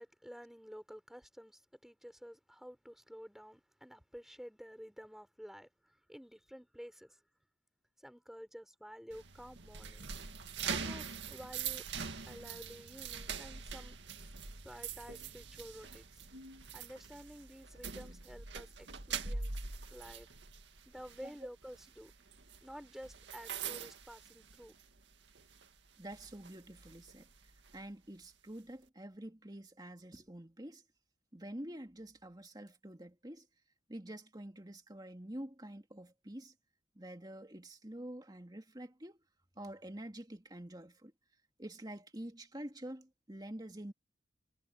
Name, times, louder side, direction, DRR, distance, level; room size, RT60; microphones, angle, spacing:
voice 1, 0.0-7.2 8.0-10.3 10.7-11.8 12.2-14.0 14.6-16.2 16.7-19.5 19.9-20.3 20.8-22.1 22.6-24.7, equal, ahead, 5.0 m, -51 dB
sound 1, 9.1-25.0 25.4-25.6 26.1-27.8, right 6 dB, 70° right, 2.1 m, -44 dB
voice 2, 26.0-27.3 27.7-30.8 31.3-33.5 33.9-36.5 37.0-39.2 39.6-41.1 41.6-43.9, right 1 dB, 20° right, 2.2 m, -47 dB
head